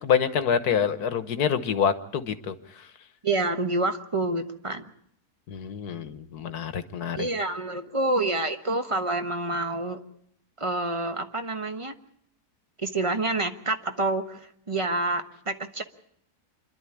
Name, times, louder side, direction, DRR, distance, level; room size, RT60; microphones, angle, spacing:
voice 1, 0.0-2.6 5.5-7.3, left 7 dB, 90° left, 11 dB, 1.7 m, -26 dB
voice 2, 3.2-4.9 7.2-10.0 10.6-11.9 12.8-15.8, right 2 dB, 20° right, 7 dB, 1.2 m, -28 dB
26.5 x 11.5 x 9.9 m, 0.71 s
omnidirectional pair, 1.6 m